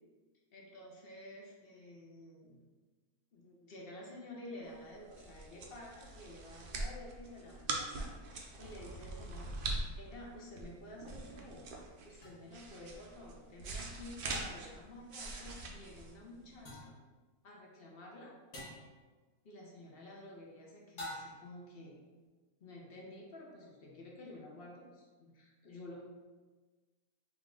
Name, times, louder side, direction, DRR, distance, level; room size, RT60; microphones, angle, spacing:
voice 1, 0.5-2.6 3.3-11.7 12.0-16.9 17.4-18.3 19.4-22.0 22.6-26.0, left 1 dB, 50° left, -2 dB, 0.7 m, -51 dB
sound 1, 4.8-16.8, right 2 dB, 70° right, 0.5 m, -43 dB
sound 2, 12.2-12.3 14.3-14.8 16.7-17.0 18.5-18.9 21.0-21.6, left 1 dB, 70° left, 1.6 m, -46 dB
3.6 x 3.0 x 3.6 m, 1.3 s
omnidirectional pair, 1.6 m